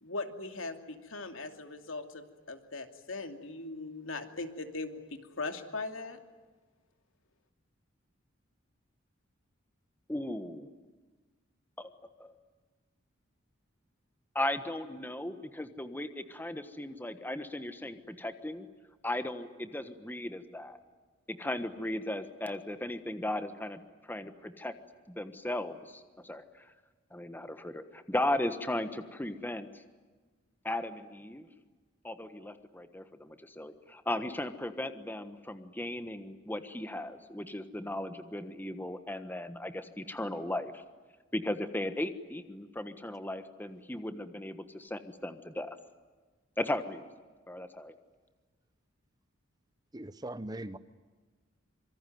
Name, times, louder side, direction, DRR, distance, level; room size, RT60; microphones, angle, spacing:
voice 1, 0.0-6.2, left 3 dB, 85° left, 2.7 m, -40 dB
voice 2, 10.1-10.7 11.8-11.9 12.2-12.3 14.3-18.7 19.0-20.8 21.3-24.7 25.1-26.7 27.1-29.7 30.6-31.5 32.0-40.8 41.3-45.8 46.6-47.0 47.5-47.9, left 1 dB, 10° left, 1.3 m, -36 dB
voice 3, 49.9-50.8, right 1 dB, 20° right, 0.9 m, -40 dB
26.5 x 24.0 x 9.4 m
head